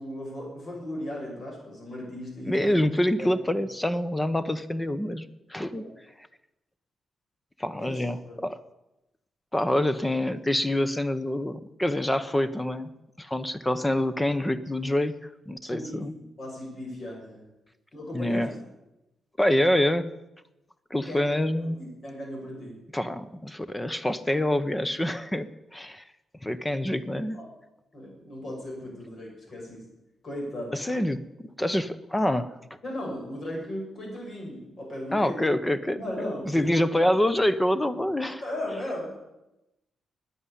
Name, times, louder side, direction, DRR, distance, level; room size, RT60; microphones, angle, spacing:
voice 1, 0.0-2.7 3.2-3.3 5.7-5.9 7.8-8.4 15.7-17.5 17.9-18.5 21.1-22.8 27.3-27.5 27.9-29.8 30.2-30.7 32.8-35.4 36.0-37.0 38.4-39.2, left 1 dB, 50° left, -1 dB, 6.5 m, -36 dB
voice 2, 2.5-5.2 5.5-5.8 7.6-8.2 8.4-8.6 9.5-12.9 13.2-15.1 15.5-16.1 18.1-18.5 19.4-20.1 20.9-21.8 22.9-26.0 26.4-27.4 30.7-32.5 35.1-38.4, left 1 dB, 10° left, 13 dB, 0.8 m, -26 dB
9.9 x 9.6 x 9.8 m, 0.94 s
cardioid pair, 95°, 0 cm